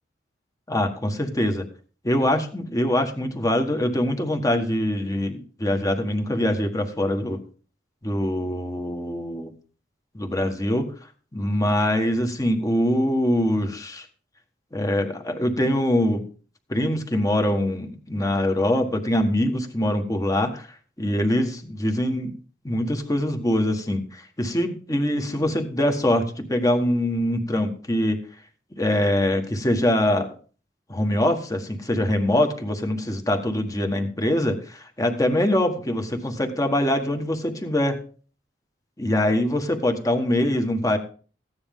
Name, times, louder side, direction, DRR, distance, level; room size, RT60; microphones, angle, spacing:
voice 1, 0.7-1.6 2.0-7.4 8.0-9.5 10.1-10.9 11.3-14.1 14.7-16.2 16.7-20.7 21.0-22.3 22.6-28.2 28.7-30.3 30.9-38.0 39.0-41.0, left 1 dB, 20° left, 6 dB, 1.4 m, -23 dB
15.0 x 9.7 x 3.7 m, 0.39 s
head